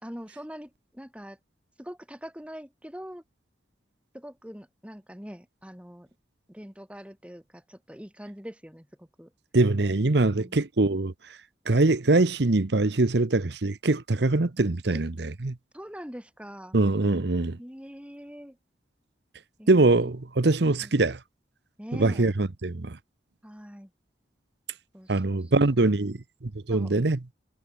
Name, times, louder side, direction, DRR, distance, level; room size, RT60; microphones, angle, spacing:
voice 1, 0.0-1.4 1.8-3.2 4.1-6.1 6.5-9.3 10.3-10.6 14.9-15.0 15.7-16.8 17.6-18.6 19.6-20.1 20.6-20.9 21.8-22.3 23.4-23.9 24.9-26.1 26.7-26.9, equal, 5° right, 3.4 m, -43 dB
voice 2, 9.5-11.1 11.7-15.6 16.7-17.6 19.7-21.2 22.0-23.0 25.1-27.2, right 2 dB, 65° right, 0.9 m, -23 dB
head